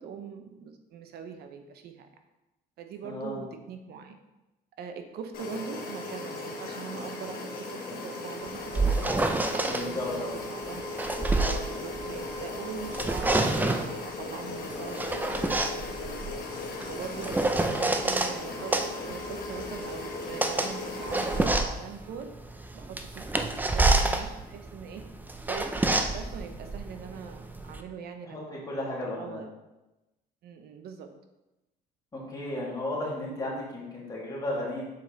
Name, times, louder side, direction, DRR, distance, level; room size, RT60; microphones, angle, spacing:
voice 1, 0.0-2.1 2.8-4.2 4.8-10.8 11.4-16.4 16.9-22.3 22.7-25.0 25.4-28.6 29.0-29.5 30.4-31.1 32.7-32.8, right 6 dB, 70° right, 7 dB, 0.8 m, -42 dB
voice 2, 3.0-3.5 9.6-10.4 28.2-29.4 32.1-34.8, left 1 dB, 20° left, -5 dB, 2.5 m, -34 dB
sound 1, 5.3-21.5, left 2 dB, 60° left, 1.5 m, -37 dB
sound 2, 8.5-9.8 10.7-12.5 12.8-13.9 14.7-18.3 18.7-27.8, right 2 dB, 10° right, 0.5 m, -28 dB
6.8 x 5.0 x 4.0 m, 1.0 s
cardioid pair, 110°, 17 cm